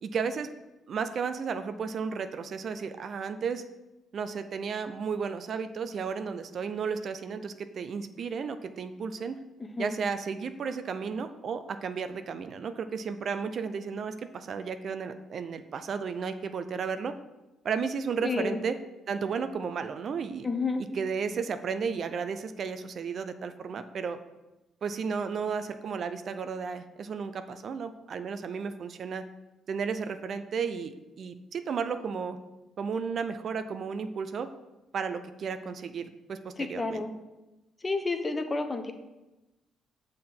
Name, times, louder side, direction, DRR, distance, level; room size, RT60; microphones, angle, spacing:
voice 1, 0.0-0.5 0.9-3.6 4.1-9.4 9.8-17.1 17.6-18.8 19.1-20.5 20.8-24.2 24.8-29.2 29.7-32.4 32.8-34.5 34.9-37.0, right 6 dB, 55° right, 10 dB, 0.4 m, -33 dB
voice 2, 18.2-18.6 20.4-20.8 36.8-37.1 37.8-38.9, left 3 dB, 25° left, 6 dB, 0.7 m, -30 dB
6.6 x 3.7 x 5.9 m, 1.0 s
cardioid pair, 90°, 0 cm